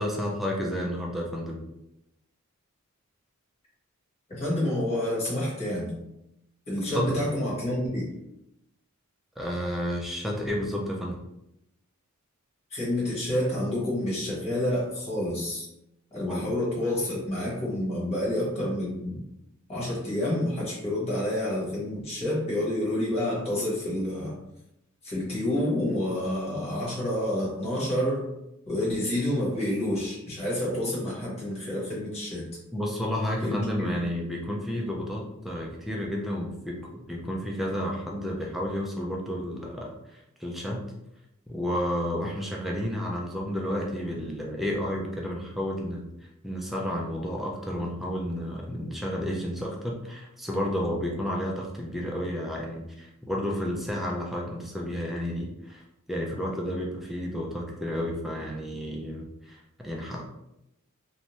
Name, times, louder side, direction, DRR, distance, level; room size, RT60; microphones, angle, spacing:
voice 1, 0.0-1.6 6.9-7.2 9.4-11.2 16.2-16.5 32.7-40.8 41.5-46.1 46.4-55.8 56.1-60.2, equal, ahead, -2 dB, 0.3 m, -31 dB
voice 2, 4.3-5.9 6.7-8.0 12.7-15.7 16.1-19.2 19.7-24.3 25.0-28.3 28.7-32.4 33.4-34.1, left 1 dB, 30° left, -6 dB, 1.1 m, -28 dB
2.6 x 2.2 x 3.0 m, 0.86 s
head